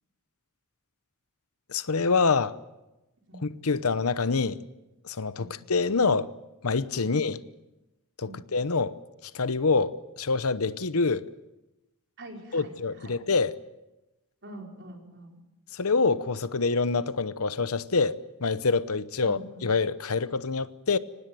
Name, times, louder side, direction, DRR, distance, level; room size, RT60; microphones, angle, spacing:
voice 1, 1.7-2.6 3.4-4.6 5.0-6.3 6.6-7.4 8.2-9.0 9.2-11.2 12.5-13.5 15.7-21.0, left 4 dB, 75° left, 0.9 m, -26 dB
voice 2, 12.2-13.2 14.4-15.4 19.2-19.7, right 1 dB, 50° right, 5.1 m, -45 dB
24.0 x 19.5 x 7.8 m
head